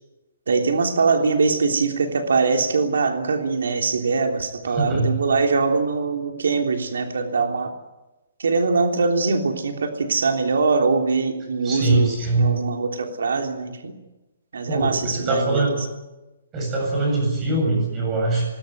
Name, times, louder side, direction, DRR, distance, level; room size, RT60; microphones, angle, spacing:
voice 1, 0.5-7.7 8.4-13.9 14.5-15.6, right 4 dB, 85° right, 4 dB, 3.4 m, -22 dB
voice 2, 4.7-5.2 11.6-12.5 14.7-15.8 16.5-18.5, right 2 dB, 15° right, 0 dB, 7.8 m, -22 dB
20.5 x 20.5 x 9.4 m, 1.1 s
hypercardioid pair, 175°, 0 cm